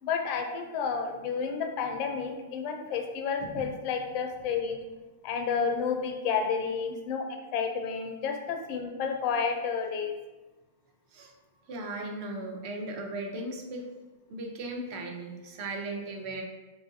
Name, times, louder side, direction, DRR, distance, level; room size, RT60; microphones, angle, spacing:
voice 1, 0.0-4.8 5.2-7.2 7.5-10.2, left 6 dB, 45° left, 4 dB, 0.4 m, -31 dB
voice 2, 11.7-13.9 14.3-16.4, right 2 dB, 50° right, 2 dB, 0.6 m, -37 dB
2.9 x 2.4 x 2.6 m, 1.1 s
hypercardioid pair, 125°, 0 cm